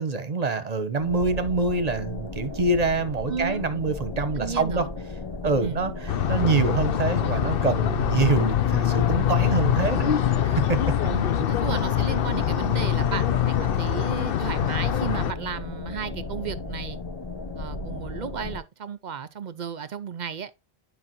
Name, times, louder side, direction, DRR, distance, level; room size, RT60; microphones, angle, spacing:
voice 1, 0.0-4.9 5.4-5.9 6.3-10.1 10.4-10.8, right 3 dB, 40° right, 0.9 m, -25 dB
sound 1, 1.0-18.6, left 3 dB, 30° left, 0.6 m, -35 dB
voice 2, 3.3-3.7 4.4-4.9 5.6-5.8 11.1-17.0 17.6-20.5, right 7 dB, 55° right, 0.5 m, -34 dB
sound 2, 6.1-15.3, left 10 dB, 60° left, 0.8 m, -24 dB
10.0 x 5.0 x 3.0 m
omnidirectional pair, 1.1 m